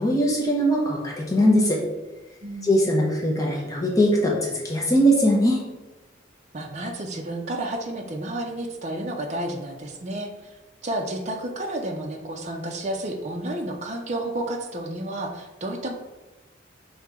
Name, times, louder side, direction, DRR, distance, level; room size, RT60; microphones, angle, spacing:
voice 1, 0.0-1.8 2.6-5.6, equal, 15° left, -2 dB, 0.7 m, -21 dB
voice 2, 2.4-3.1 6.5-10.6 10.8-15.9, right 1 dB, 35° right, 2 dB, 0.5 m, -31 dB
5.4 x 2.8 x 3.5 m, 1.1 s
head